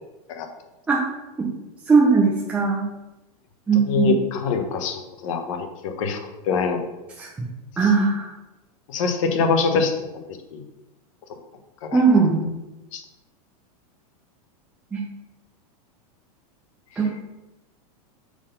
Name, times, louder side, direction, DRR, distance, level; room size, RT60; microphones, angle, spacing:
voice 1, 1.9-2.9 3.7-4.2 7.2-7.3 7.8-8.3 11.9-12.4 14.9-15.0 17.0-17.3, right 4 dB, 5° right, -3 dB, 0.5 m, -19 dB
voice 2, 3.9-6.2 6.5-6.8 7.8-7.9 8.9-10.2 10.5-10.6 11.8-12.0 12.9-13.0, left 5 dB, 55° left, 6 dB, 1.1 m, -24 dB
6.3 x 3.9 x 5.4 m, 1.0 s
supercardioid pair, 170°, 19 cm